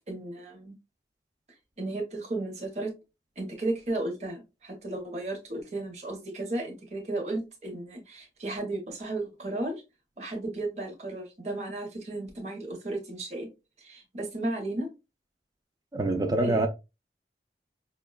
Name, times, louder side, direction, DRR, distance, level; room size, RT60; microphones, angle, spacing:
voice 1, 0.1-0.7 1.8-2.9 3.4-9.8 10.2-13.5 13.8-14.9 16.4-16.7, right 2 dB, 40° right, 0.7 m, -34 dB
voice 2, 15.9-16.7, right 2 dB, 20° right, 0.3 m, -25 dB
5.1 x 2.2 x 2.2 m
head